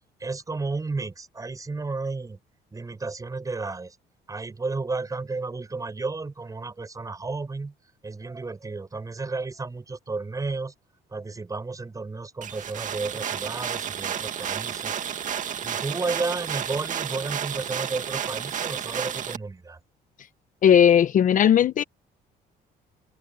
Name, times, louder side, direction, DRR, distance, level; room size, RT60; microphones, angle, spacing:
voice 1, 0.2-2.4 2.7-4.0 4.3-7.7 8.0-10.7 11.1-15.0 15.6-19.8, right 3 dB, 20° right, 7.1 m, -32 dB
sound 1, 12.4-19.4, right 8 dB, 50° right, 2.1 m, -31 dB
voice 2, 20.6-21.8, left 9 dB, 50° left, 0.9 m, -17 dB
cardioid pair, 110°, 17 cm